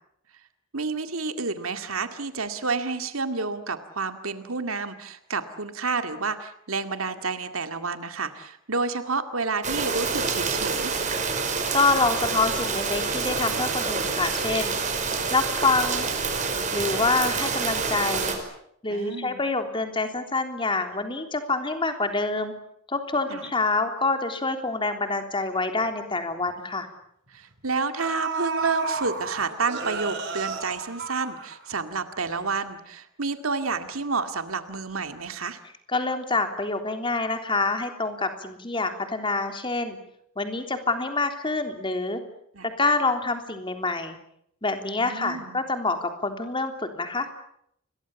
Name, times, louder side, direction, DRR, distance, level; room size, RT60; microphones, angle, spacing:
voice 1, 0.7-11.0 18.9-19.4 23.3-23.5 27.3-35.6 42.5-42.7 45.0-45.6, right 4 dB, 85° right, 8 dB, 2.2 m, -30 dB
sound 1, 9.6-18.4, right 5 dB, 35° right, 5.3 m, -27 dB
voice 2, 11.7-14.7 15.3-16.1 16.7-18.3 18.8-22.5 22.9-26.9 35.9-40.0 40.3-42.2 42.8-44.2 44.6-47.3, left 3 dB, 25° left, 6 dB, 3.4 m, -26 dB
sound 2, 25.8-25.9 26.3-26.5 27.5-27.6 28.0-31.9 32.3-32.4, right 5 dB, 60° right, 4.8 m, -32 dB
30.0 x 23.0 x 7.2 m, 0.71 s
head